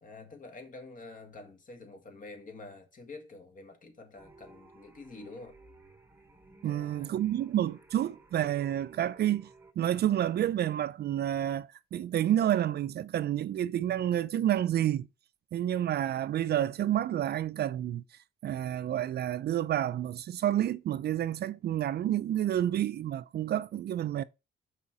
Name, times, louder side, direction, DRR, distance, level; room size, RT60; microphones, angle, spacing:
voice 1, 0.0-5.6 6.6-7.2, left 3 dB, 40° left, 1.7 m, -48 dB
sound 1, 4.2-9.7, right 3 dB, 10° right, 1.1 m, -56 dB
voice 2, 6.6-9.5 9.8-15.1 15.5-18.0 18.4-24.2, right 11 dB, 55° right, 0.4 m, -29 dB
5.5 x 3.8 x 5.8 m
cardioid pair, 90°, 20 cm